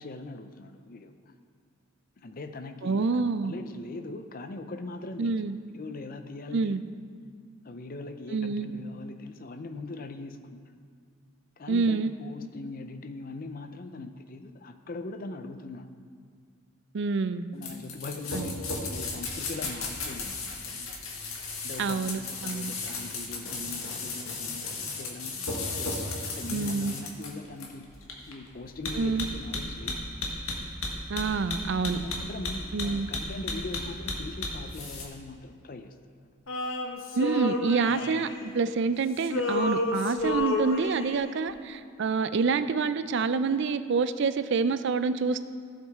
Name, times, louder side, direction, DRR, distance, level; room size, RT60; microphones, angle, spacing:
voice 1, 0.0-1.3 2.2-5.4 5.7-6.8 7.6-10.6 11.6-15.9 17.5-20.9 21.6-27.9 28.3-30.0 31.9-35.9 37.9-38.5, left 2 dB, 45° left, 8 dB, 0.5 m, -41 dB
voice 2, 2.8-3.5 5.2-5.6 6.5-6.8 8.3-8.7 11.7-12.1 16.9-17.5 18.3-18.5 21.8-22.7 26.5-26.9 28.9-29.3 31.1-32.0 32.7-33.1 37.1-38.3 38.5-45.4, right 4 dB, 60° right, 12 dB, 0.4 m, -27 dB
sound 1, 17.6-35.0, left 3 dB, 85° left, 1.6 m, -34 dB
Male singing, 36.5-38.9 39.2-41.3, left 2 dB, 65° left, 1.0 m, -31 dB
15.5 x 7.4 x 3.6 m, 2.1 s
head